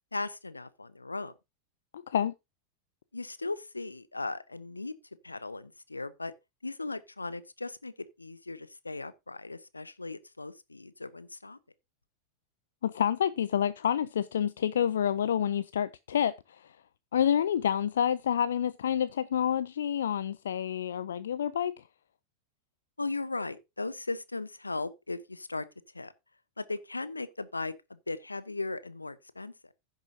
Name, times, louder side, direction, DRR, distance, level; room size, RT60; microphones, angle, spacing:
voice 1, 0.1-1.3 3.1-4.9 5.2-6.3 6.6-11.6 23.0-25.7 25.9-26.1 26.6-29.5, left 3 dB, 80° left, 0.8 m, -37 dB
voice 2, 1.9-2.3 12.8-16.8 17.1-21.8, left 9 dB, 65° left, 0.4 m, -28 dB
15.5 x 6.7 x 2.8 m
figure-of-eight pair, 90°, 0 cm